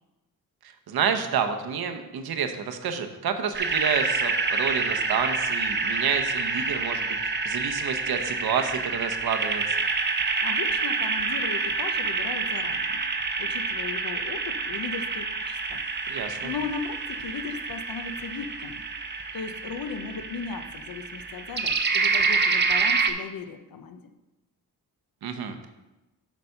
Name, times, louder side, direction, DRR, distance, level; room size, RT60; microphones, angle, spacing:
voice 1, 0.9-9.8 16.1-16.5 25.2-25.6, right 7 dB, 65° right, 6 dB, 0.9 m, -29 dB
sound 1, 3.5-23.1, right 4 dB, 25° right, 0.7 m, -27 dB
voice 2, 10.4-13.0 13.4-15.8 16.4-18.8 19.3-24.1, left 5 dB, 60° left, 7 dB, 0.8 m, -37 dB
8.1 x 4.2 x 5.6 m, 1.0 s
cardioid pair, 100°, 39 cm